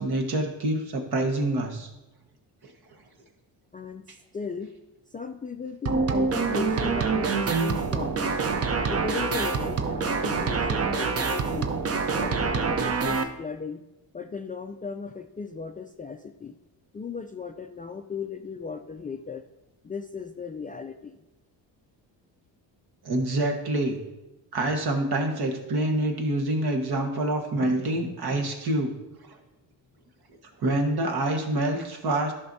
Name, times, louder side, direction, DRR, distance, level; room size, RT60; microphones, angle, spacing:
voice 1, 0.0-1.9 2.6-2.7 23.0-24.0 24.5-28.9 30.6-32.3, right 1 dB, 55° right, 3 dB, 1.4 m, -26 dB
voice 2, 3.7-4.7 5.1-8.4 8.9-11.7 12.1-13.8 14.1-16.6 16.9-19.4 19.8-21.2, left 5 dB, 20° left, 5 dB, 0.3 m, -36 dB
sound 1, 5.9-13.2, right 4 dB, 35° right, 0.6 m, -26 dB
11.0 x 5.8 x 2.7 m, 0.99 s
cardioid pair, 75°, 44 cm